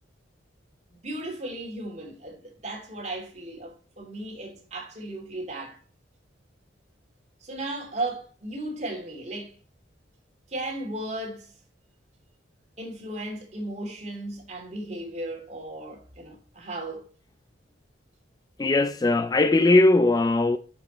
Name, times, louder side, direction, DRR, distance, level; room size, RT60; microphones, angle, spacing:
voice 1, 1.0-5.8 7.4-9.5 10.5-11.5 12.8-17.1, right 2 dB, 35° right, 2.9 m, -35 dB
voice 2, 18.6-20.6, left 2 dB, 20° left, 0.3 m, -19 dB
10.5 x 5.9 x 3.1 m
head